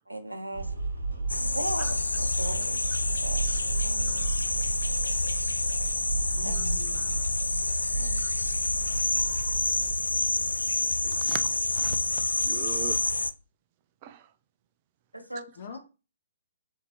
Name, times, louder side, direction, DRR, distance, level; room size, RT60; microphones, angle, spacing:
voice 1, 0.1-0.7 1.5-2.8 3.2-3.4 3.8-4.3 6.4-6.5 7.9-8.2 15.1-15.4, right 1 dB, 85° right, 0.9 m, -37 dB
sound 1, 0.5-10.0, right 4 dB, 65° right, 1.0 m, -34 dB
sound 2, 1.3-13.3, left 2 dB, 75° left, 0.3 m, -28 dB
voice 2, 6.4-7.2 15.6-15.8, left 5 dB, 45° left, 0.9 m, -42 dB
voice 3, 11.1-12.0 12.4-13.0 14.0-14.3, right 10 dB, 30° right, 0.5 m, -40 dB
3.9 x 2.8 x 4.3 m
figure-of-eight pair, 125°, 0 cm